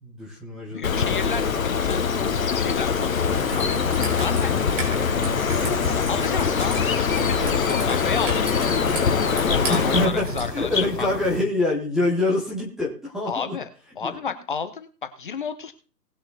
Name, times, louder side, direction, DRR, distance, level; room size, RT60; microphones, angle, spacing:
voice 1, 0.0-1.3 9.7-13.6 14.0-14.1, left 2 dB, ahead, -5 dB, 0.8 m, -25 dB
voice 2, 0.7-2.0 2.4-4.5 5.6-8.4 9.3-10.7 11.0-11.1 13.3-13.7 14.0-15.7, left 6 dB, 30° left, 10 dB, 0.8 m, -32 dB
Bird, 0.8-10.1, left 6 dB, 55° left, 1.4 m, -23 dB
Raindrop / Trickle dribble, 3.3-10.5, right 2 dB, 50° right, 4.6 m, -33 dB
sound 1, 6.4-11.4, left 6 dB, 75° left, 1.2 m, -32 dB
19.0 x 6.6 x 4.0 m, 0.36 s
figure-of-eight pair, 140°, 49 cm